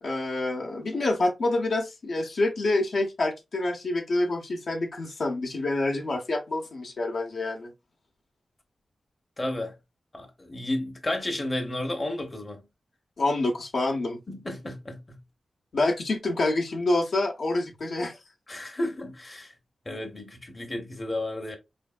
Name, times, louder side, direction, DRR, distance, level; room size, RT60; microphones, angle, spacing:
voice 1, 0.0-7.7 13.2-14.2 15.7-18.2, left 2 dB, 65° left, 0.9 m, -27 dB
voice 2, 9.4-9.8 10.1-12.6 14.3-15.2 18.5-19.5 19.9-21.6, left 1 dB, 25° left, 0.8 m, -32 dB
4.3 x 3.4 x 2.3 m
wide cardioid pair, 130°, 0 cm